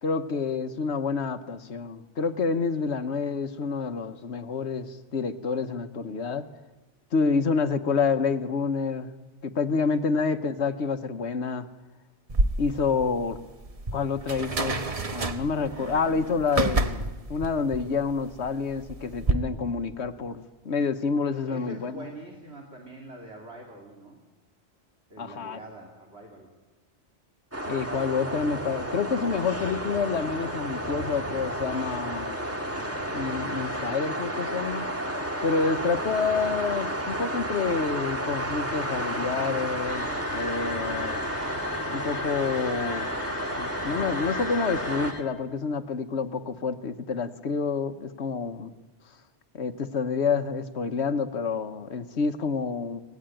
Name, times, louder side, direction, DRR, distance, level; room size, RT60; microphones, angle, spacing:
voice 1, 0.0-6.4 7.1-9.1 9.4-11.7 12.4-13.4 13.9-22.0 25.2-25.6 27.7-32.5 33.1-34.9 35.4-41.2 41.9-43.1 43.6-48.7 49.5-53.0, left 5 dB, 70° left, 10 dB, 1.3 m, -28 dB
voice 2, 9.7-10.1 21.5-24.2 25.1-26.5, right 1 dB, 65° right, 0 dB, 2.9 m, -44 dB
sound 1, 12.3-19.3, right 2 dB, 35° right, 1.0 m, -29 dB
sound 2, 27.5-45.1, equal, 10° right, 1.9 m, -31 dB
sound 3, 39.9-45.2, left 5 dB, 50° left, 2.6 m, -38 dB
24.5 x 19.0 x 9.1 m, 1.2 s
omnidirectional pair, 1.2 m